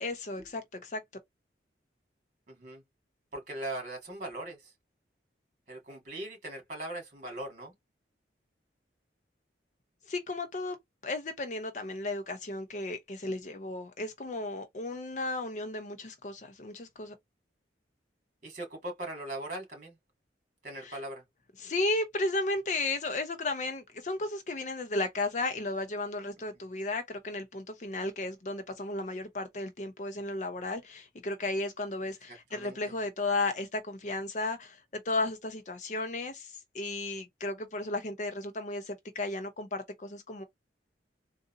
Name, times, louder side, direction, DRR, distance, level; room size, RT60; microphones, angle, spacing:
voice 1, 0.0-1.0 10.1-10.8 11.0-17.1 20.8-21.0 21.6-40.4, left 2 dB, 40° left, 0.6 m, -34 dB
voice 2, 2.5-2.8 3.3-4.6 5.7-7.7 18.4-20.0 20.6-21.2 32.3-32.8, right 1 dB, 45° right, 2.0 m, -40 dB
3.8 x 2.6 x 2.5 m
head